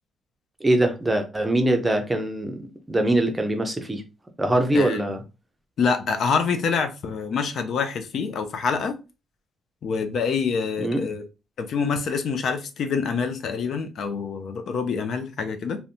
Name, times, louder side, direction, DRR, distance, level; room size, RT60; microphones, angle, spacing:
voice 1, 0.6-2.6 2.9-4.0 4.4-5.2 10.8-11.0, right 1 dB, 15° right, 0.5 m, -22 dB
voice 2, 5.8-9.0 9.8-11.2 11.6-15.8, left 5 dB, 65° left, 0.4 m, -26 dB
2.6 x 2.1 x 2.6 m
cardioid pair, 90°, 0 cm